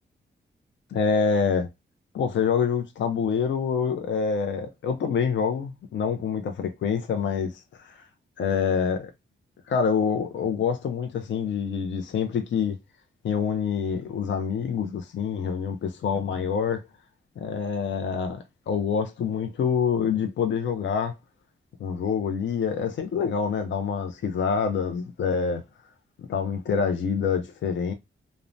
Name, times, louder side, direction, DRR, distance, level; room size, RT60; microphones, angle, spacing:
voice 1, 0.9-1.7 2.1-8.1 8.4-9.1 9.7-12.8 13.2-16.8 17.4-21.2 21.8-25.6 26.2-27.9, left 6 dB, 65° left, 0.4 m, -26 dB
3.0 x 2.0 x 2.5 m
wide cardioid pair, 125°, 21 cm